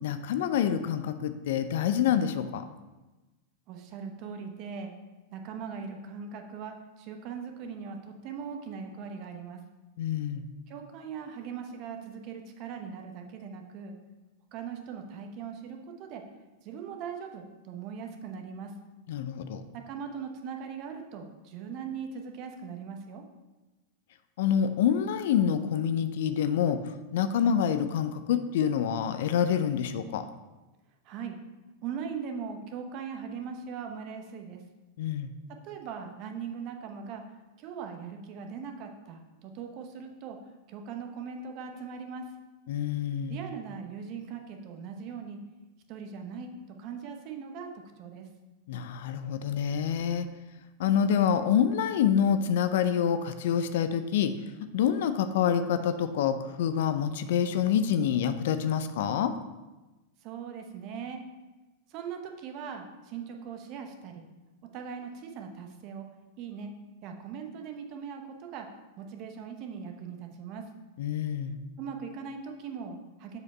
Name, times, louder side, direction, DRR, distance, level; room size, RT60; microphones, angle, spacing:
voice 1, 0.0-2.6 10.0-10.5 19.1-19.6 24.4-30.3 35.0-35.3 42.7-43.4 48.7-50.3 50.8-54.3 54.7-59.3 71.0-71.6, left 8 dB, 65° left, 10 dB, 0.5 m, -27 dB
voice 2, 3.7-4.9 5.3-9.6 10.7-13.9 14.5-16.3 16.6-18.8 19.7-23.3 31.0-31.4 31.8-34.6 35.5-37.3 37.6-40.4 40.7-42.3 43.3-45.4 45.9-48.3 60.2-61.2 61.9-64.2 64.7-66.1 66.4-66.8 67.0-70.7 71.8-73.4, right 6 dB, 50° right, 4 dB, 1.0 m, -40 dB
6.8 x 4.9 x 4.2 m, 1.1 s
hypercardioid pair, 100°, 0 cm